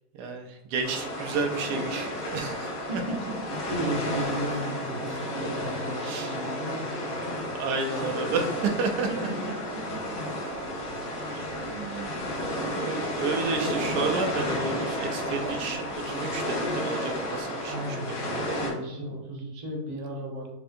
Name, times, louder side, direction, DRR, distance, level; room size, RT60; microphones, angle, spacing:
voice 1, 0.2-2.7 6.0-6.3 7.6-9.3 11.5-12.2 12.7-18.0 18.3-18.6, right 4 dB, 80° right, 3 dB, 1.2 m, -31 dB
sound 1, 0.8-18.7, equal, 80° left, 2.2 m, -32 dB
voice 2, 2.9-3.3 3.6-7.0 7.4-7.5 9.1-10.4 11.1-11.4 17.7-20.5, equal, 35° right, -3 dB, 0.8 m, -35 dB
4.4 x 2.7 x 2.5 m, 0.91 s
omnidirectional pair, 1.7 m